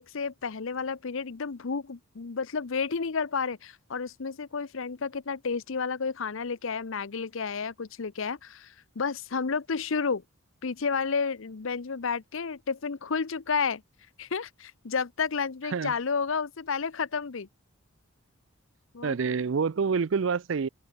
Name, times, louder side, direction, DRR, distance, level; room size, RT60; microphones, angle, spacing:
voice 1, 0.0-10.2 10.6-13.8 14.2-17.5 18.9-19.1, left 5 dB, 65° left, 0.7 m, -31 dB
voice 2, 19.0-20.7, right 5 dB, 60° right, 0.5 m, -27 dB
open air
head